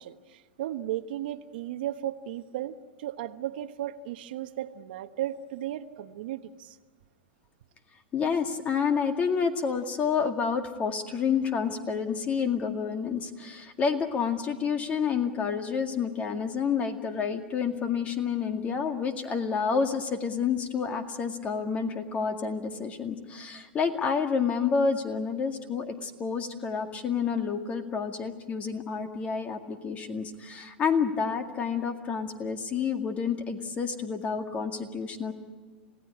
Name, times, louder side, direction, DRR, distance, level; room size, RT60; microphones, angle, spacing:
voice 1, 0.0-6.8, right 12 dB, 65° right, 1.2 m, -35 dB
voice 2, 8.1-35.3, left 6 dB, 25° left, 2.1 m, -29 dB
27.5 x 17.0 x 9.9 m
hypercardioid pair, 135°, 6 cm